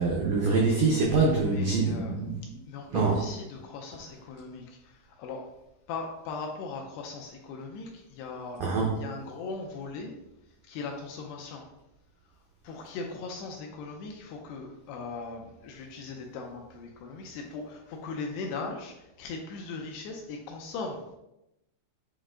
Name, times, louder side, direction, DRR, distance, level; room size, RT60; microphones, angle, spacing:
voice 1, 0.0-2.4 2.9-3.2 8.6-9.0, right 3 dB, 90° right, -2 dB, 1.8 m, -25 dB
voice 2, 1.0-2.1 2.7-5.4 5.9-8.7 9.0-10.2 10.7-11.6 12.6-21.0, left 4 dB, 80° left, 1 dB, 2.5 m, -39 dB
8.0 x 3.4 x 3.7 m, 0.89 s
omnidirectional pair, 5.3 m